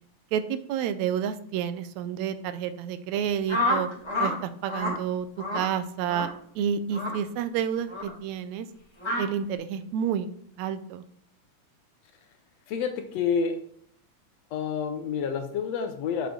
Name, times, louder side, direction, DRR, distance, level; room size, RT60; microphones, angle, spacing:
voice 1, 0.3-3.9 4.2-5.3 5.5-6.3 6.6-8.7 9.2-10.3 10.6-11.0, right 8 dB, 80° right, 12 dB, 1.8 m, -29 dB
sound 1, 3.5-4.3 4.6-5.0 5.4-5.7 6.1-6.3 6.9-7.2 7.9-8.1 9.0-9.2, left 1 dB, 20° left, 0.8 m, -28 dB
voice 2, 12.7-13.6 14.5-16.3, left 6 dB, 75° left, 6 dB, 1.7 m, -28 dB
7.0 x 5.9 x 3.8 m, 0.65 s
omnidirectional pair, 3.4 m